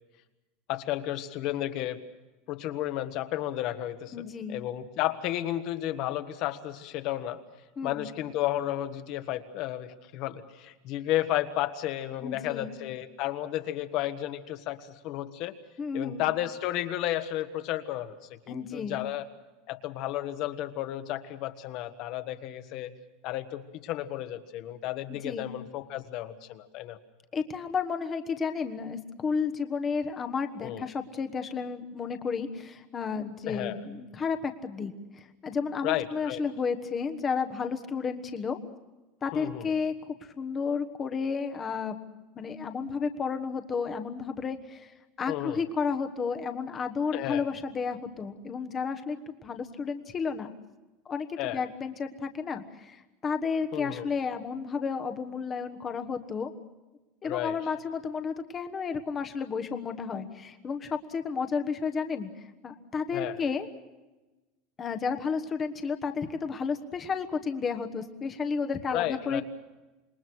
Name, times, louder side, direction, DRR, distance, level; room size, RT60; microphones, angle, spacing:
voice 1, 0.7-2.0 2.5-7.4 7.8-15.6 15.9-18.1 18.5-19.2 19.7-22.9 23.2-27.0 30.6-30.9 33.5-33.8 35.8-36.4 39.3-39.7 45.3-45.6 47.1-47.5 51.4-51.6 53.7-54.1 57.2-57.6 63.1-63.4 68.9-69.4, left 13 dB, 40° left, 10 dB, 1.4 m, -32 dB
voice 2, 4.1-4.6 7.8-8.1 12.2-12.7 15.8-16.3 18.5-19.1 25.1-25.5 27.3-38.6 39.2-42.0 42.3-50.5 51.0-56.5 57.2-63.7 64.8-69.4, left 5 dB, 15° left, 7 dB, 1.3 m, -32 dB
27.0 x 22.5 x 6.3 m, 1.1 s
supercardioid pair, 180°, 0 cm